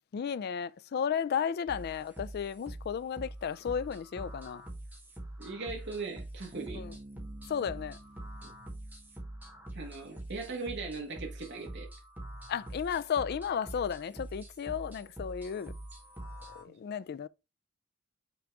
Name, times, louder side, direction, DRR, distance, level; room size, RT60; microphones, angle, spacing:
voice 1, 0.1-4.6 6.7-6.9 7.5-8.0 12.5-15.7 16.6-17.3, left 7 dB, 50° left, 0.3 m, -34 dB
sound 1, 1.7-16.6, right 1 dB, 10° right, 1.7 m, -45 dB
voice 2, 5.4-6.8 8.4-8.5 9.8-11.9 16.7-16.8, right 3 dB, 55° right, 1.7 m, -39 dB
Bass guitar, 6.5-10.0, right 1 dB, 30° right, 1.1 m, -51 dB
5.9 x 3.8 x 4.6 m
head